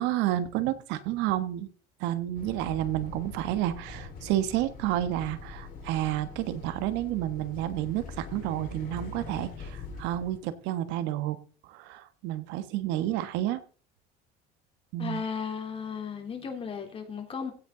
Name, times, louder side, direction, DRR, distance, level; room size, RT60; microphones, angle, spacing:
voice 1, 0.0-1.7 2.0-11.4 11.6-13.6 14.9-15.2, right 13 dB, 75° right, 1.4 m, -30 dB
sound 1, 2.3-10.4, left 4 dB, 50° left, 4.5 m, -43 dB
voice 2, 15.0-17.5, left 6 dB, 30° left, 3.3 m, -35 dB
16.0 x 8.3 x 3.9 m
cardioid pair, 120°, 18 cm